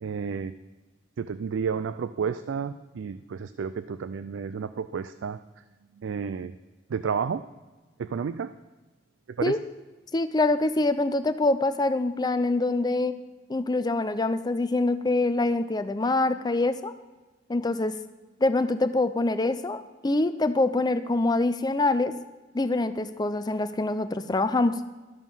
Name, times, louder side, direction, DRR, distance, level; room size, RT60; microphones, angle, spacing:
voice 1, 0.0-0.5 1.2-5.4 6.0-6.5 6.9-7.5 8.0-8.5 9.4-9.6, right 6 dB, 85° right, 13 dB, 0.4 m, -31 dB
voice 2, 10.1-13.2 13.5-16.9 17.5-18.0 18.4-22.1 22.5-24.8, left 2 dB, 20° left, 11 dB, 0.5 m, -25 dB
12.5 x 7.3 x 5.5 m, 1.2 s
head